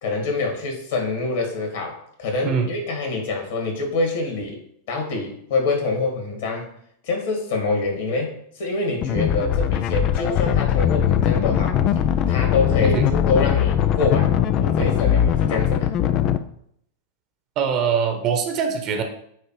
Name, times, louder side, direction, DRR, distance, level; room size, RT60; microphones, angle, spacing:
voice 1, 0.0-4.6 4.9-6.7 7.1-11.8 12.3-15.9, left 3 dB, 55° left, 2 dB, 2.4 m, -25 dB
sound 1, 9.0-16.4, left 10 dB, 35° left, 0.5 m, -20 dB
voice 2, 17.6-19.0, right 7 dB, 40° right, 5 dB, 1.2 m, -22 dB
9.2 x 3.2 x 4.9 m, 0.69 s
figure-of-eight pair, 90°, 0 cm